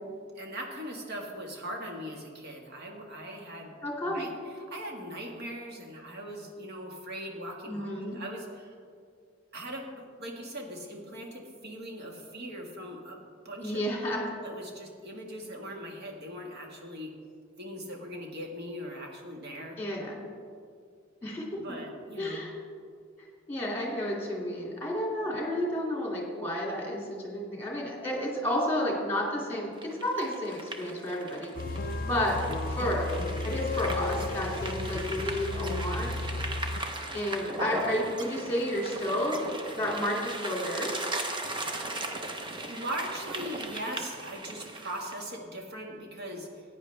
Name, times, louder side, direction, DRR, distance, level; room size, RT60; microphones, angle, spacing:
voice 1, 0.4-3.7 4.1-8.8 9.5-13.8 14.1-17.1 17.6-19.8 21.6-22.4 42.5-46.6, equal, 55° right, 0 dB, 1.7 m, -40 dB
voice 2, 3.8-4.3 7.7-8.2 13.6-14.3 19.8-20.2 21.2-21.6 22.2-22.5 23.5-32.4 32.7-33.1 33.4-36.3 37.1-39.4 39.7-40.9, left 1 dB, 10° left, -2 dB, 2.5 m, -31 dB
sound 1, 29.8-45.2, right 2 dB, 25° right, 0.8 m, -38 dB
sound 2, 31.6-36.8, left 2 dB, 45° left, 0.5 m, -33 dB
15.0 x 9.5 x 3.4 m, 2.2 s
head